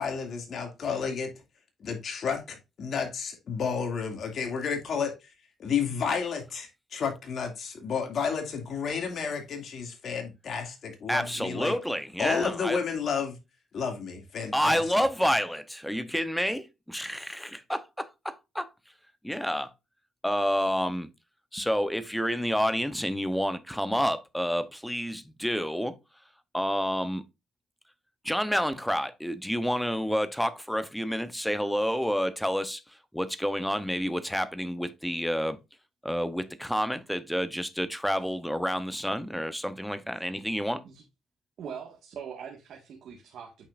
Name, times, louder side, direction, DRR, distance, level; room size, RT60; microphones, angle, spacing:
voice 1, 0.0-1.3 1.8-5.3 5.6-11.7 12.2-13.4 13.7-14.8, left 6 dB, 60° left, 2.4 m, -31 dB
voice 2, 11.1-12.8 14.5-18.7 19.2-19.7 20.2-21.1 21.5-26.0 26.5-27.2 28.2-35.6 36.0-40.8, equal, ahead, 0.9 m, -29 dB
voice 3, 41.6-43.7, right 7 dB, 70° right, 1.7 m, -42 dB
8.6 x 5.5 x 2.5 m
cardioid pair, 90°, 0 cm